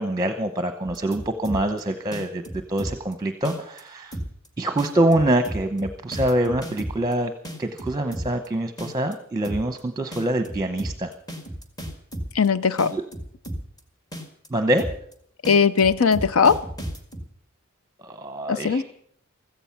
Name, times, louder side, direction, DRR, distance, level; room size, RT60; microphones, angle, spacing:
voice 1, 0.0-2.4 2.7-4.1 4.6-7.3 7.6-11.1 12.9-13.0 14.5-14.8 18.0-18.8, right 1 dB, 20° right, 8 dB, 0.9 m, -25 dB
sound 1, 0.9-1.8 2.1-3.1 3.4-3.8 4.1-4.5 4.8-7.1 7.4-8.5 8.8-9.1 9.4-9.8 10.1-12.5 12.8-13.8 14.1-14.5 14.8-15.1 15.4-17.2, equal, 20° left, 2.0 m, -33 dB
voice 2, 12.3-12.9 15.5-16.6 18.5-18.8, left 5 dB, 70° left, 14 dB, 0.6 m, -19 dB
16.0 x 14.5 x 5.9 m, 0.65 s
head